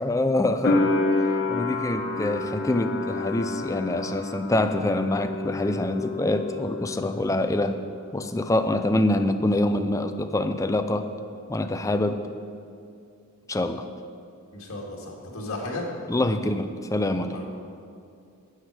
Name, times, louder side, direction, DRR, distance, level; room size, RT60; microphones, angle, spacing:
voice 1, 0.0-7.8 8.1-11.1 11.5-12.3 13.5-13.8 16.1-17.4, left 1 dB, 15° left, 8 dB, 0.4 m, -25 dB
sound 1, 0.6-7.5 7.7-8.6, left 3 dB, 50° left, 1.1 m, -29 dB
voice 2, 14.5-15.8 17.3-17.5, left 2 dB, 65° left, -2 dB, 2.2 m, -34 dB
12.0 x 9.0 x 4.8 m, 2.4 s
head